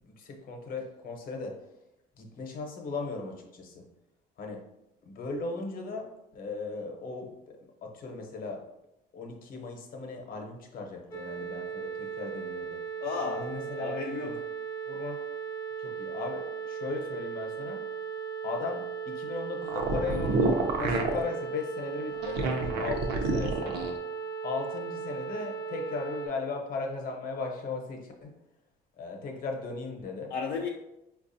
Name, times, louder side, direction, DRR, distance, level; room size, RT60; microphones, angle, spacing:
voice 1, 0.1-1.6 2.2-3.8 4.4-4.6 5.0-8.6 9.1-12.8 13.3-14.4 14.9-15.2 15.8-17.9 18.4-23.8 24.4-28.4 29.0-30.3, left 3 dB, 55° left, 0.8 m, -37 dB
sound 1, 11.1-26.3, right 7 dB, 20° left, 0.5 m, -37 dB
voice 2, 13.0-14.4 30.3-30.7, left 5 dB, 80° left, 0.4 m, -34 dB
sound 2, 19.6-21.2 22.1-24.0, right 3 dB, 75° right, 0.6 m, -28 dB
4.6 x 2.3 x 2.6 m
cardioid pair, 110°, 17 cm